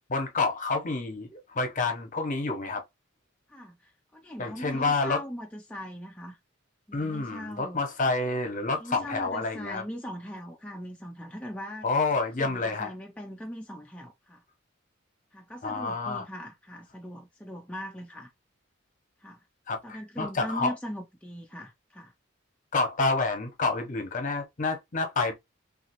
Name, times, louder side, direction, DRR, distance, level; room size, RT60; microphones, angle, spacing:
voice 1, 0.0-2.8 4.4-5.2 6.9-9.8 11.8-12.9 15.6-16.3 19.7-20.7 22.7-25.3, left 3 dB, 40° left, 0.9 m, -28 dB
voice 2, 3.5-6.4 6.9-7.8 8.8-11.9 12.4-14.4 15.3-18.3 19.2-19.4 19.8-22.1, equal, 5° left, 0.4 m, -40 dB
3.1 x 2.4 x 2.9 m
head